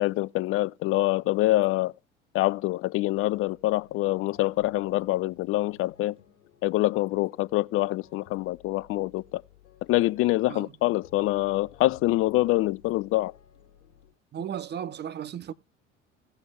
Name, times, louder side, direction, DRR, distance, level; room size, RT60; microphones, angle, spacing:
voice 1, 0.0-1.9 2.3-6.2 6.6-9.4 9.9-13.3, left 18 dB, 40° left, 0.4 m, -25 dB
sound 1, 3.1-14.1, left 8 dB, 75° left, 1.7 m, -56 dB
voice 2, 14.3-15.5, right 9 dB, 30° right, 0.7 m, -35 dB
17.5 x 7.8 x 2.2 m
figure-of-eight pair, 65°, 36 cm